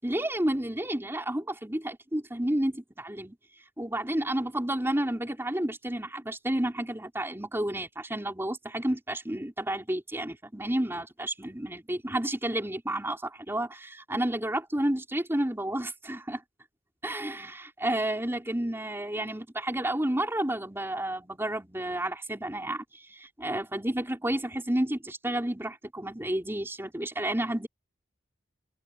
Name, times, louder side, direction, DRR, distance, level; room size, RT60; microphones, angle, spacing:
voice 1, 0.0-3.4 3.8-16.4 17.0-27.7, right 1 dB, 10° right, 4.2 m, -31 dB
head